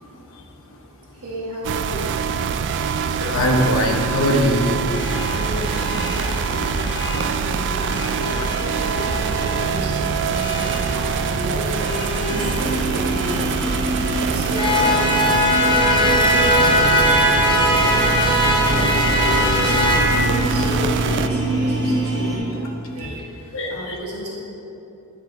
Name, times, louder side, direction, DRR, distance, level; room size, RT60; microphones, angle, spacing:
voice 1, 1.1-2.1 5.3-6.3 6.5-6.7 7.1-13.6 14.0-15.2 15.5-18.0 18.7-24.3, equal, 80° right, -5 dB, 1.3 m, -32 dB
sound 1, 1.6-21.3, right 7 dB, 55° right, 0.3 m, -24 dB
voice 2, 3.2-4.8 7.1-7.4 7.8-7.9 23.0-23.1 23.5-23.9, equal, 65° left, 1 dB, 1.0 m, -21 dB
sound 2, 4.9-20.0, left 1 dB, 20° left, 0.7 m, -22 dB
sound 3, 12.3-22.4, right 1 dB, 25° right, 1.8 m, -26 dB
9.9 x 5.2 x 4.0 m, 2.9 s
head